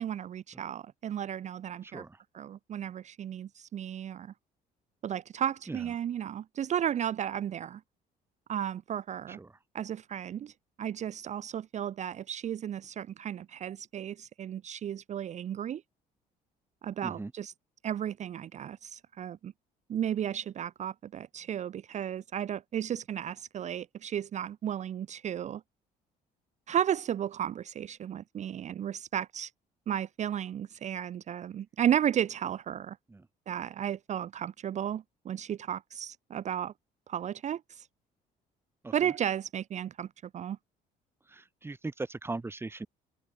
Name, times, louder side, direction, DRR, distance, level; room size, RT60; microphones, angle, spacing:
voice 1, 0.0-2.0 2.3-4.3 5.0-7.8 8.5-9.4 9.7-10.5 10.8-15.8 16.8-17.5 17.8-19.5 19.9-25.6 26.7-29.5 29.9-33.0 33.5-36.7 37.1-37.9 38.9-40.1 40.3-40.6, right 10 dB, 45° right, 0.6 m, -34 dB
voice 2, 1.8-2.2 5.7-5.8 9.4-9.5 17.0-17.3 33.1-33.2 38.8-38.9 41.3-42.9, right 3 dB, 15° right, 1.4 m, -38 dB
open air
cardioid pair, 110°, 17 cm